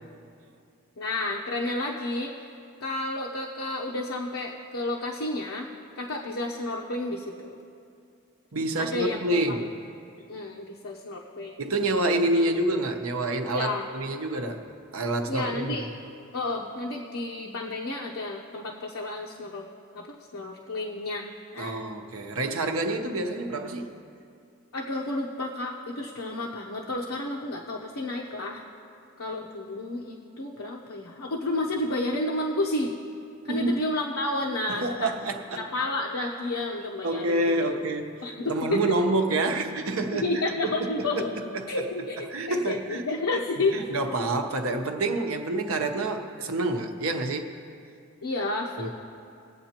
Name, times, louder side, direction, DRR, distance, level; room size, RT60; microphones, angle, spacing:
voice 1, 1.0-2.3 2.8-5.7 6.0-7.6 8.8-9.7 10.3-11.5 13.5-13.9 15.3-15.9 16.3-19.7 19.9-21.8 24.7-28.6 29.2-32.9 33.5-35.1 35.6-37.4 37.7-37.8 38.2-39.0 40.1-41.3 41.7-43.9 48.2-48.9, left 2 dB, 80° left, -2 dB, 0.8 m, -31 dB
voice 2, 8.5-9.7 11.6-14.6 14.9-15.7 21.6-23.9 33.5-33.7 34.7-35.7 37.0-41.1 41.3-41.7 42.3-43.1 43.7-47.5 48.8-48.9, right 2 dB, 75° right, 4 dB, 0.9 m, -28 dB
21.5 x 8.1 x 2.9 m, 2.5 s
head